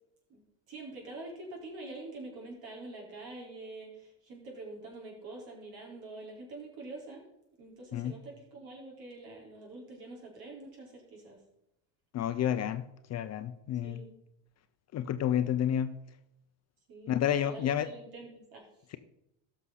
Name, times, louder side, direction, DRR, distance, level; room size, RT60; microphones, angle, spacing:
voice 1, 0.7-7.2 7.6-11.4 13.8-14.1 16.9-17.2 17.4-18.9, right 2 dB, 55° right, 4.3 m, -46 dB
voice 2, 12.1-12.8 13.1-14.0 14.9-15.9 17.1-17.9, left 10 dB, 35° left, 0.6 m, -30 dB
15.5 x 6.3 x 4.1 m
supercardioid pair, 110°, 44 cm